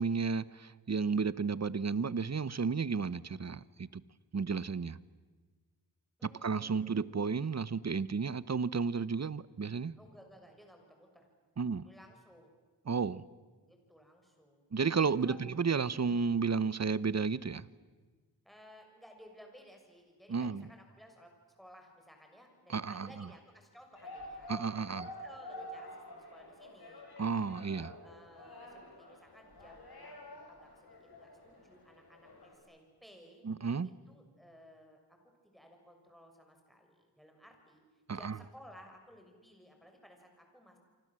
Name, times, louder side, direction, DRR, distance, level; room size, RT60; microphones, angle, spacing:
voice 1, 0.0-4.0 4.3-5.0 6.2-9.9 11.6-11.9 12.9-13.2 14.7-17.6 20.3-20.6 22.7-23.1 24.5-25.0 27.2-28.0 33.4-33.9 38.1-38.4, right 5 dB, 40° right, 18 dB, 0.8 m, -32 dB
voice 2, 6.2-7.1 10.0-11.3 11.8-12.5 13.6-14.6 15.0-15.4 18.4-24.5 24.9-27.5 28.0-33.4 33.8-37.8 38.1-40.8, equal, ahead, 3 dB, 6.7 m, -58 dB
sound 1, 23.9-32.5, left 1 dB, 65° left, 7.5 m, -49 dB
28.5 x 24.5 x 7.6 m, 1.4 s
wide cardioid pair, 70°, 41 cm